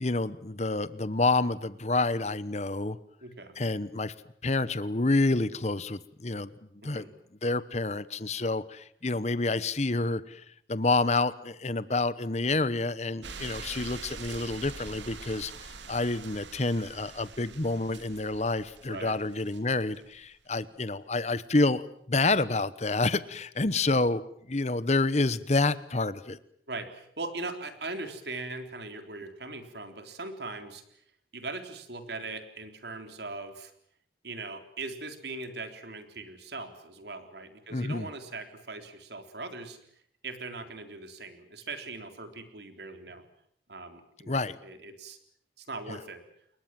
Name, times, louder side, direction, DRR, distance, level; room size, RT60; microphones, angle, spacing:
voice 1, 0.0-3.0 3.6-4.1 4.4-6.5 6.8-7.1 7.4-24.2 24.5-26.4 37.7-38.1 44.3-44.6, left 2 dB, 35° left, 16 dB, 1.0 m, -28 dB
voice 2, 3.2-3.5 6.8-7.1 18.9-19.2 26.7-30.8 31.3-33.7 34.2-39.8 40.2-43.2 43.7-45.2 45.6-46.2, right 3 dB, 65° right, 7 dB, 3.7 m, -40 dB
sound 1, 13.2-20.1 21.1-21.2, right 4 dB, 85° right, 2.6 m, -44 dB
29.0 x 22.0 x 7.6 m, 0.68 s
head